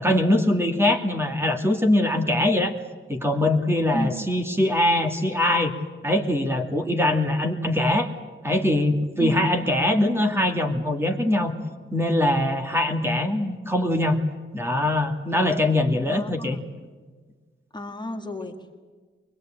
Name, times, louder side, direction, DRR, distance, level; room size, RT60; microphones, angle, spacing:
voice 1, 0.0-2.7 3.1-5.7 6.0-8.1 8.4-11.6 11.9-14.2 14.5-16.6, left 1 dB, 10° right, 4 dB, 2.3 m, -22 dB
voice 2, 15.8-16.6 17.7-18.7, left 1 dB, 20° left, 3 dB, 2.1 m, -32 dB
23.5 x 21.0 x 8.8 m, 1.4 s
wide cardioid pair, 115°, 21 cm